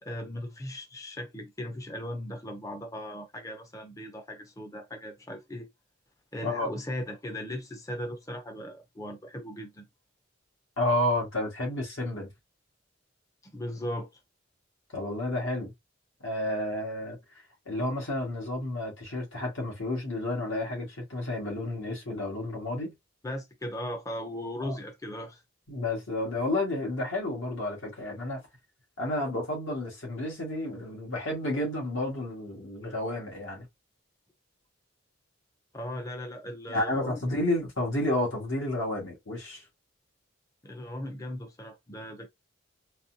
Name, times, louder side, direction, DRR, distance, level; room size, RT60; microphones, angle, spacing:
voice 1, 0.0-5.7 6.3-9.9 13.4-14.1 23.2-25.4 35.7-37.2 40.6-42.3, left 1 dB, 15° left, 0.5 m, -38 dB
voice 2, 10.8-12.3 14.9-15.7 16.2-17.2 17.6-22.9 24.6-24.7 25.7-28.4 29.0-33.7 36.7-39.6, left 1 dB, 75° left, 1.7 m, -31 dB
4.0 x 2.2 x 2.7 m
head